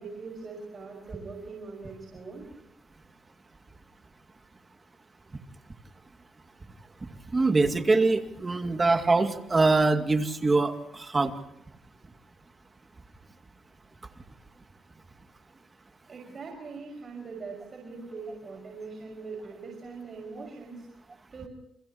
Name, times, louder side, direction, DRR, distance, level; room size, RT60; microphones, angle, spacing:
voice 1, 0.0-2.5 16.1-20.9 21.3-21.5, right 4 dB, 40° right, 2 dB, 5.7 m, -41 dB
voice 2, 7.3-11.3, right 3 dB, 25° right, 7 dB, 2.3 m, -23 dB
30.0 x 29.0 x 3.0 m, 0.84 s
cardioid pair, 90°, 0 cm